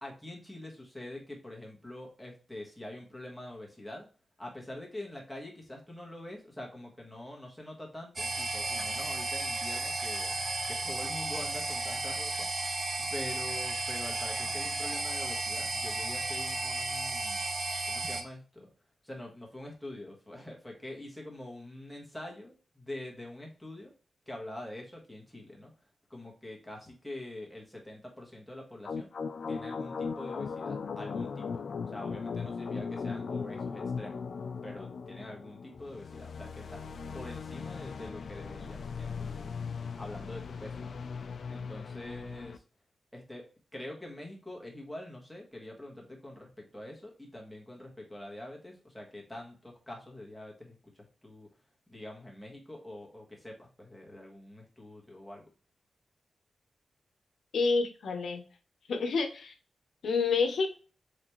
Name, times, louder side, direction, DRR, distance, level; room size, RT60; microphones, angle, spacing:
voice 1, 0.0-4.1 4.4-10.3 10.7-12.8 13.1-17.4 17.8-18.7 19.0-23.9 24.3-25.7 26.1-29.1 29.5-31.6 31.9-34.2 34.6-36.8 37.1-39.6 39.9-41.0 41.5-42.6 43.1-43.5 43.7-51.5 51.9-55.4, left 1 dB, ahead, -2 dB, 1.1 m, -45 dB
sound 1, 8.2-18.2, right 3 dB, 30° right, 0.6 m, -34 dB
sound 2, 28.8-42.6, left 5 dB, 60° left, 0.4 m, -38 dB
voice 2, 57.5-58.4 58.9-59.5 60.0-60.8, left 4 dB, 85° left, 5 dB, 0.7 m, -28 dB
4.1 x 3.4 x 3.0 m, 0.36 s
wide cardioid pair, 175°, 0 cm